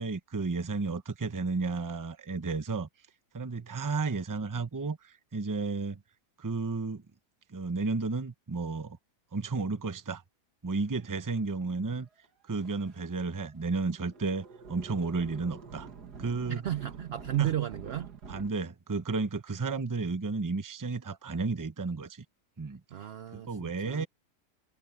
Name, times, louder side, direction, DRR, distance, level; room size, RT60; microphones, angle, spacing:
voice 1, 0.0-2.9 3.3-6.0 6.4-7.0 7.5-9.0 9.3-10.2 10.6-12.1 12.5-15.9 16.2-16.6 17.4-17.5 18.3-22.2 22.6-22.8 23.3-24.1, right 4 dB, 20° right, 0.5 m, -32 dB
sound 1, 11.4-11.5 12.2-12.3 12.5-13.1 13.7-18.5, right 5 dB, 90° right, 2.4 m, -47 dB
voice 2, 16.5-18.1 22.9-24.1, right 12 dB, 70° right, 0.6 m, -33 dB
omnidirectional pair, 1.7 m